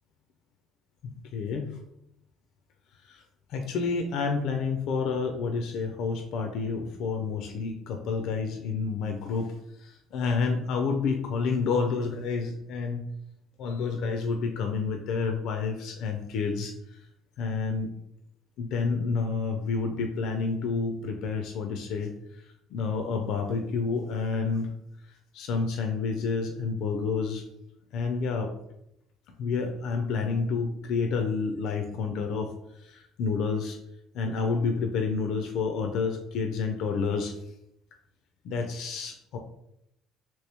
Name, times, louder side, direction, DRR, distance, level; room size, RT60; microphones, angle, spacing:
voice 1, 1.0-1.8 3.1-3.2 3.5-9.5 9.8-13.1 13.6-16.7 17.4-17.9 18.6-22.1 22.7-24.7 25.3-27.4 27.9-28.5 29.4-32.5 32.8-33.8 34.1-37.3 38.4-39.4, left 4 dB, 60° left, 4 dB, 0.4 m, -29 dB
3.0 x 2.9 x 3.3 m, 0.78 s
cardioid pair, 155°, 0 cm